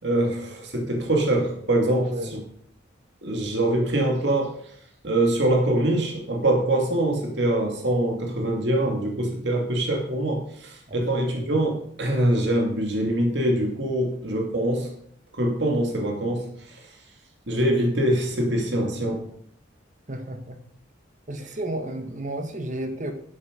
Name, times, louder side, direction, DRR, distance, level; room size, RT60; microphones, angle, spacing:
voice 1, 0.0-2.4 3.2-4.6 5.0-14.9 15.3-16.9 17.5-19.2, right 1 dB, 60° right, 0 dB, 2.6 m, -24 dB
voice 2, 1.9-2.3 10.9-11.0 11.3-11.5 20.1-20.6 21.3-23.1, right 1 dB, 40° right, 6 dB, 1.6 m, -32 dB
11.5 x 8.1 x 5.3 m, 0.65 s
head